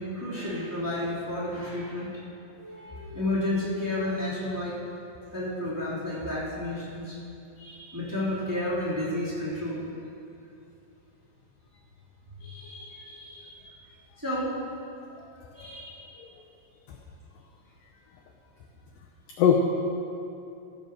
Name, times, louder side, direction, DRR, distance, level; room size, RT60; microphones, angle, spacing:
voice 1, 0.0-4.8 5.3-7.2 7.6-9.8 14.2-14.5 15.5-16.1, left 1 dB, 5° right, -10 dB, 2.3 m, -31 dB
voice 2, 12.4-13.5 15.2-15.3 15.6-15.7 16.2-16.3 19.4-19.6, left 7 dB, 80° left, 0 dB, 2.0 m, -27 dB
15.5 x 5.4 x 6.6 m, 2.6 s
omnidirectional pair, 4.8 m